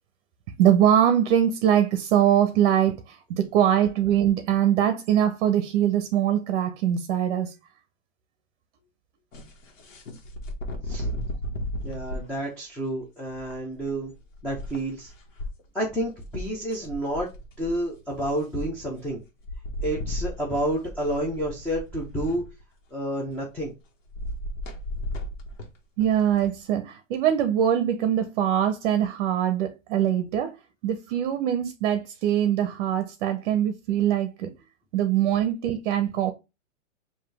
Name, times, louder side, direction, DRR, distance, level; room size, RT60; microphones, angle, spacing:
voice 1, 0.6-7.5 26.0-30.5 30.8-34.5 34.9-36.3, right 10 dB, 45° right, 0.7 m, -22 dB
sound 1, 9.3-12.3 13.3-15.5 16.2-16.3 16.5-18.0 19.0-19.1 19.4-22.6 24.1-26.5, left 1 dB, 75° left, 1.4 m, -35 dB
voice 2, 11.8-14.1 14.4-15.1 15.7-17.3 17.6-19.2 19.8-22.4 22.9-23.7, right 1 dB, 5° left, 0.6 m, -29 dB
4.9 x 2.7 x 3.4 m
hypercardioid pair, 145°, 38 cm